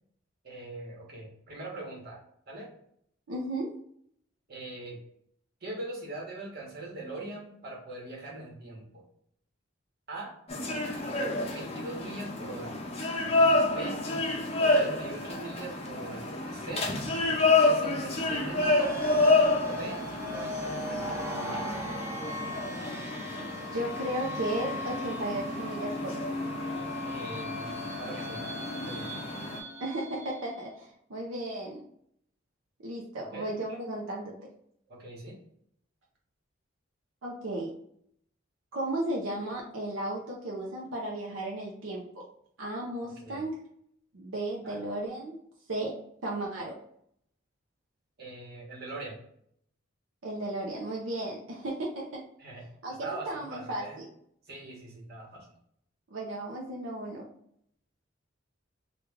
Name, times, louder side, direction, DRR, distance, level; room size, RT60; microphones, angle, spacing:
voice 1, 0.4-2.7 4.5-5.0 5.6-9.0 10.1-10.3 11.5-12.8 13.6-14.0 14.6-16.9 17.5-21.4 27.0-29.2 33.3-33.5 34.9-35.4 43.0-43.4 44.6-44.8 48.2-49.2 52.4-54.0 54.5-55.5, right 2 dB, 50° right, -2 dB, 1.2 m, -42 dB
voice 2, 3.3-3.7 23.7-26.2 29.8-31.8 32.8-34.4 37.2-37.7 38.7-42.2 42.6-43.6 44.1-45.4 45.7-46.8 50.2-52.2 52.8-54.1 56.1-57.3, right 1 dB, 85° right, -2 dB, 0.6 m, -35 dB
sound 1, 10.5-29.6, left 2 dB, 30° left, 0.6 m, -29 dB
sound 2, 18.1-30.6, equal, 15° right, 0.6 m, -37 dB
3.2 x 2.4 x 3.5 m, 0.69 s
head